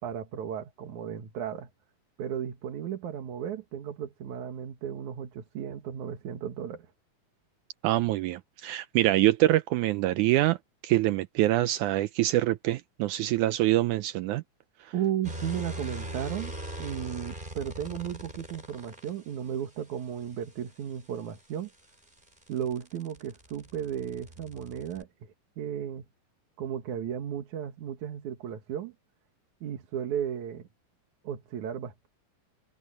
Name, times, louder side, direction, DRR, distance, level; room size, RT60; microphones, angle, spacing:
voice 1, 0.0-1.7 2.2-6.9 14.9-21.7 22.5-26.0 26.6-28.9 29.6-30.7 31.2-32.1, right 9 dB, 60° right, 2.7 m, -35 dB
voice 2, 7.8-10.6 10.8-14.4, right 15 dB, 90° right, 1.7 m, -25 dB
sound 1, 15.2-19.1 21.4-25.0, right 1 dB, 10° right, 6.6 m, -40 dB
omnidirectional pair, 4.2 m